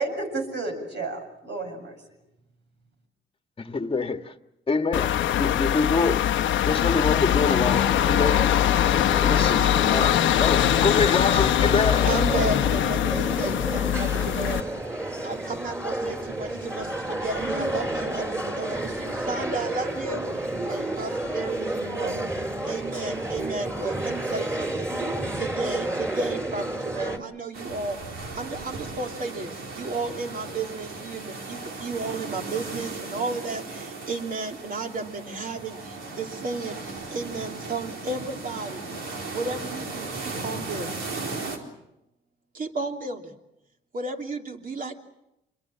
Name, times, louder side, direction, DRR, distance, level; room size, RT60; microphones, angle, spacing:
voice 1, 0.0-2.0 22.0-22.2, right 3 dB, 60° right, 7.3 m, -32 dB
voice 2, 3.6-4.3 4.7-6.2 6.7-8.5 9.2-12.1 13.4-13.5, left 4 dB, 25° left, 1.6 m, -26 dB
sound 1, 4.9-14.6, left 11 dB, 75° left, 1.0 m, -22 dB
sound 2, 7.6-27.2, right 1 dB, 15° right, 4.4 m, -31 dB
voice 3, 12.0-14.6 15.2-20.2 20.7-22.2 22.6-24.9 25.3-28.0 28.3-36.8 37.1-38.8 39.3-40.9 42.5-43.3 43.9-45.0, right 3 dB, 45° right, 3.0 m, -33 dB
sound 3, 27.5-41.6, right 3 dB, 85° right, 4.1 m, -36 dB
27.5 x 22.0 x 7.4 m
cardioid pair, 90°, 20 cm